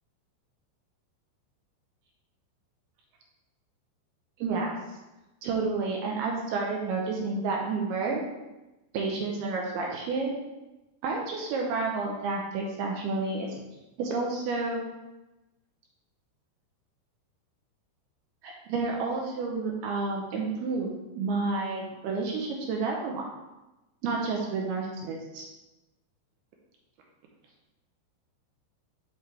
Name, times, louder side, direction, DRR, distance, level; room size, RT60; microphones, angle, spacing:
voice 1, 4.4-4.8 5.4-8.2 8.9-10.4 11.0-13.5 14.0-14.8 18.4-23.2 24.0-25.4, right 3 dB, 85° right, -1 dB, 2.3 m, -30 dB
5.9 x 4.9 x 3.2 m, 1.0 s
omnidirectional pair, 5.2 m